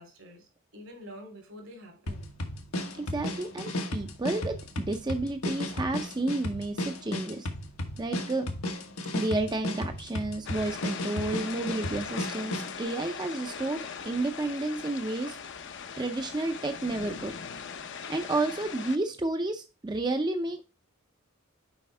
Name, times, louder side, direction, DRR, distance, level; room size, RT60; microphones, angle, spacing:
voice 1, 0.0-2.3, equal, 80° right, 2.9 m, -47 dB
sound 1, 2.1-12.8, left 1 dB, 85° left, 1.3 m, -34 dB
voice 2, 3.0-7.5 8.0-8.5 9.1-15.4 16.0-17.3 18.1-20.6, right 2 dB, 20° right, 0.5 m, -31 dB
sound 2, 10.5-19.0, left 6 dB, 60° left, 0.7 m, -40 dB
7.1 x 5.2 x 3.3 m
head